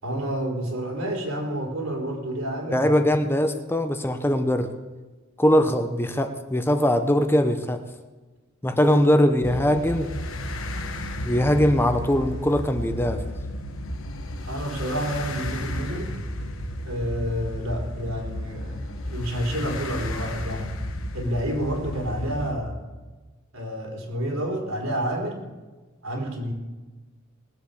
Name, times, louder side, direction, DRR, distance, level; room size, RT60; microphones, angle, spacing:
voice 1, 0.0-3.2 5.6-5.7 8.7-8.9 14.5-16.1 16.8-20.8 21.1-22.8 23.5-25.4 26.0-26.5, equal, 80° right, 1 dB, 4.1 m, -29 dB
voice 2, 2.7-4.7 5.4-7.8 8.6-10.2 11.2-13.2, equal, 10° left, 8 dB, 0.8 m, -21 dB
sound 1, 9.4-22.5, left 1 dB, 75° left, 1.4 m, -33 dB
20.0 x 8.0 x 7.0 m, 1.2 s
head